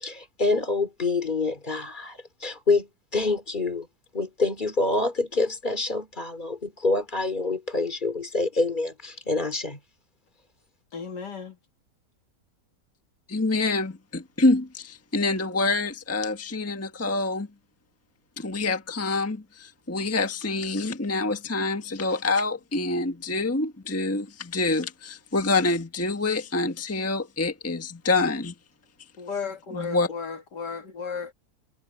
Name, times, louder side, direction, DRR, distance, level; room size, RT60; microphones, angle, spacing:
voice 1, 0.0-2.9 3.1-3.9 4.1-9.8, left 3 dB, 25° left, 2.9 m, -26 dB
voice 2, 10.9-11.5 29.2-31.3, left 5 dB, 75° left, 2.7 m, -34 dB
voice 3, 13.3-17.5 18.4-28.5 29.7-30.1, left 3 dB, 10° left, 1.2 m, -26 dB
omnidirectional pair, 1.8 m